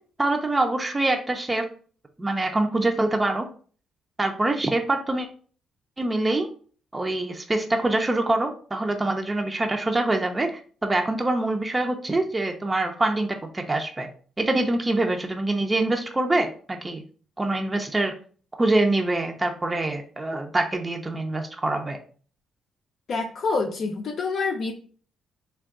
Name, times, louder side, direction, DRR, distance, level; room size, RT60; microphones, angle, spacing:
voice 1, 0.2-1.7 2.2-3.5 4.2-5.3 6.0-6.5 6.9-10.5 10.8-13.3 13.5-14.1 14.4-17.0 17.4-18.1 18.6-22.0, right 2 dB, 20° right, 4 dB, 0.5 m, -24 dB
voice 2, 23.1-24.7, left 4 dB, 60° left, 1 dB, 0.5 m, -27 dB
3.4 x 2.2 x 3.6 m, 0.43 s
cardioid pair, 90°, 0 cm